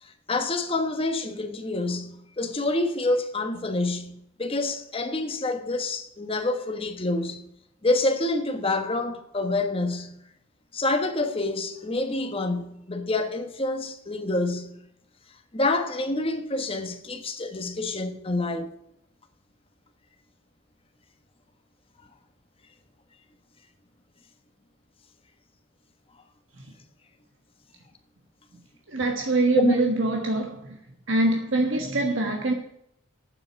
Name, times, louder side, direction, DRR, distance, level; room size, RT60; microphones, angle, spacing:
voice 1, 0.0-7.5 7.8-10.2 10.7-14.8 15.5-18.7 29.5-29.7, left 2 dB, 25° left, 1.3 m, -27 dB
voice 2, 28.9-30.8 31.1-32.5, right 2 dB, 65° right, 1.4 m, -24 dB
9.2 x 7.7 x 8.5 m
head